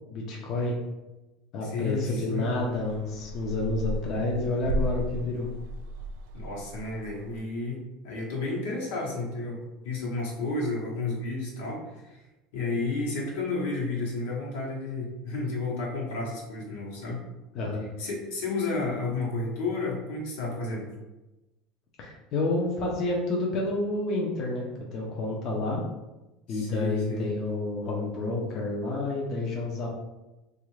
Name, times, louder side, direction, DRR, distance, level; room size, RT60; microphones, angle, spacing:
voice 1, 0.1-0.7 1.5-5.5 17.5-17.9 22.0-25.8 26.5-29.9, left 2 dB, 45° left, -2 dB, 0.6 m, -29 dB
voice 2, 1.6-2.5 6.3-12.2 12.5-17.2 18.0-20.9 26.5-27.3, left 3 dB, 85° left, -3 dB, 1.0 m, -32 dB
sound 1, 2.4-7.4, equal, 80° right, 0.3 m, -35 dB
3.2 x 2.4 x 3.1 m, 1.0 s
supercardioid pair, 145°, 0 cm